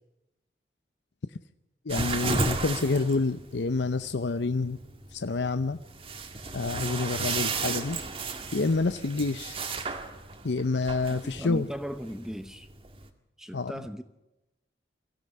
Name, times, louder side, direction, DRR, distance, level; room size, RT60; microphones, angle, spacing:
voice 1, 1.8-4.8 5.1-5.8 6.5-8.0 8.5-9.6 10.4-11.7 13.5-13.7, left 3 dB, 80° left, 11 dB, 0.7 m, -28 dB
sound 1, 1.9-13.1, right 4 dB, 30° right, 2.0 m, -34 dB
voice 2, 11.1-12.7 13.4-14.0, equal, 5° right, 9 dB, 0.8 m, -37 dB
23.5 x 16.0 x 9.6 m, 0.96 s
head